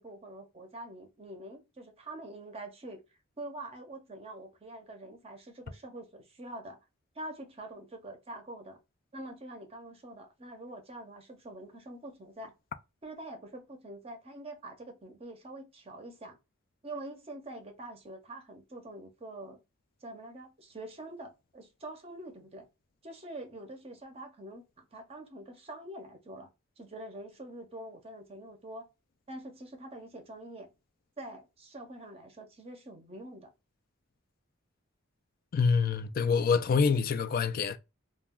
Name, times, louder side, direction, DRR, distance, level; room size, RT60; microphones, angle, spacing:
voice 1, 0.0-3.0 3.4-6.8 7.2-8.8 9.1-12.5 13.0-16.4 16.8-19.6 20.0-22.7 23.0-26.5 26.8-28.9 29.3-30.7 31.2-33.5, right 1 dB, 30° right, 0.6 m, -45 dB
voice 2, 35.5-37.8, left 5 dB, 45° left, 0.3 m, -26 dB
2.3 x 2.2 x 3.5 m
head